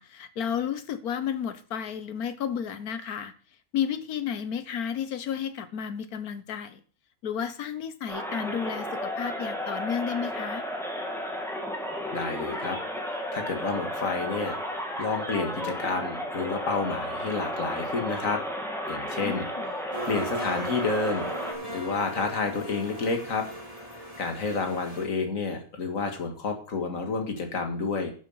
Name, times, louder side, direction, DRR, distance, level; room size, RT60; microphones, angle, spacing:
voice 1, 0.0-3.3 3.7-6.8 7.2-10.6 19.2-19.7, left 8 dB, 75° left, 12 dB, 1.4 m, -32 dB
sound 1, 8.1-21.5, equal, ahead, 2.1 m, -33 dB
voice 2, 12.1-12.8 13.1-14.6 15.0-18.4 18.9-19.7 20.1-23.5 23.9-28.1, left 4 dB, 60° left, 4 dB, 2.2 m, -30 dB
sound 2, 19.9-25.1, right 1 dB, 20° right, 3.0 m, -38 dB
11.5 x 7.2 x 5.6 m, 0.42 s
omnidirectional pair, 1.6 m